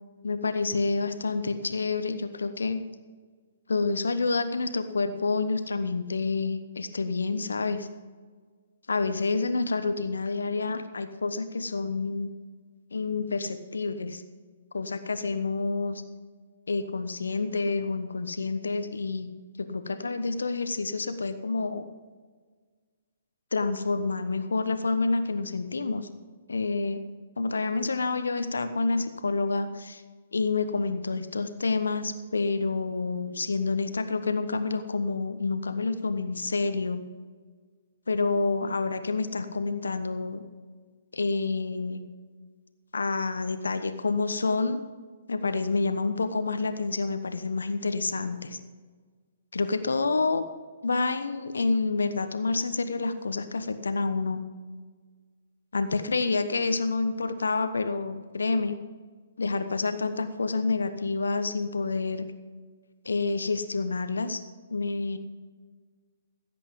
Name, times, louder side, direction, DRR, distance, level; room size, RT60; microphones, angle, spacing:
voice 1, 0.2-2.8 3.7-7.9 8.9-12.3 12.9-14.2 14.7-16.0 16.7-19.3 19.6-21.8 23.5-26.1 26.5-27.0 27.4-30.0 30.3-37.0 38.1-40.4 41.1-42.0 42.9-44.8 45.3-48.6 49.5-50.4 50.8-54.4 55.7-58.8 59.4-62.3 63.0-64.4 64.7-65.2, left 3 dB, 65° left, 10 dB, 1.0 m, -28 dB
15.5 x 8.3 x 5.3 m, 1.5 s
figure-of-eight pair, 125°, 0 cm